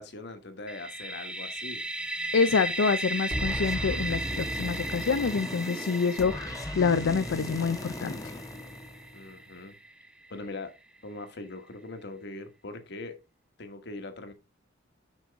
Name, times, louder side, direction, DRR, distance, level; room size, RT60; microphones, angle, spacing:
voice 1, 0.0-1.8 9.1-9.8 10.3-10.7 11.0-13.2 13.6-14.3, left 2 dB, 60° left, 1.4 m, -41 dB
sound 1, 0.7-10.4, right 2 dB, 5° right, 0.6 m, -36 dB
voice 2, 2.3-8.2, left 5 dB, 75° left, 0.5 m, -27 dB
sound 2, 3.3-9.5, left 1 dB, 20° left, 1.1 m, -37 dB
7.3 x 6.2 x 3.5 m
head